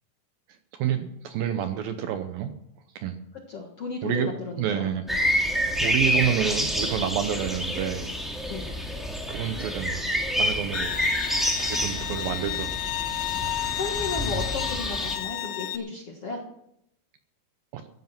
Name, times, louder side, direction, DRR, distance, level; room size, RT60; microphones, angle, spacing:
voice 1, 0.8-2.5 3.0-3.2 4.0-4.3 4.6-5.0 5.8-8.1 9.3-10.1 10.4-10.9 11.6-12.9 13.4-13.7 17.7-17.8, right 9 dB, 75° right, 8 dB, 2.2 m, -29 dB
voice 2, 3.5-5.2 8.5-8.7 13.3-13.4 13.8-16.4, left 3 dB, 55° left, 1 dB, 1.7 m, -34 dB
sound 1, 5.1-15.1, equal, ahead, 1.0 m, -28 dB
Bowed string instrument, 10.7-15.8, left 14 dB, 75° left, 2.8 m, -32 dB
15.5 x 11.5 x 5.9 m, 0.76 s
omnidirectional pair, 5.0 m